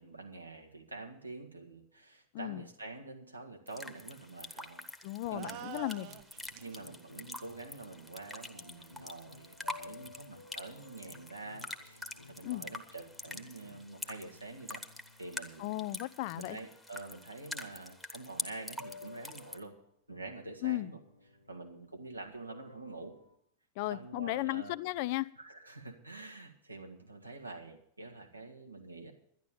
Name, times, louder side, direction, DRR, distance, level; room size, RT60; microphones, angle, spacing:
voice 1, 0.0-4.9 5.3-5.8 6.6-14.8 15.2-15.8 16.3-19.8 20.1-21.0 21.5-23.2 23.9-24.8 25.4-29.1, right 2 dB, 85° right, 1 dB, 1.7 m, -47 dB
sound 1, 3.7-19.6, left 1 dB, ahead, 1.3 m, -46 dB
voice 2, 5.0-6.1 12.4-12.6 15.6-16.6 20.6-20.9 23.8-25.3, left 18 dB, 50° left, 18 dB, 0.4 m, -35 dB
sound 2, 5.2-6.8, right 12 dB, 45° right, 0.7 m, -46 dB
sound 3, 5.7-16.7 18.3-23.4, left 4 dB, 85° left, 1.1 m, -56 dB
11.5 x 11.0 x 6.8 m, 0.69 s
figure-of-eight pair, 90°, 0 cm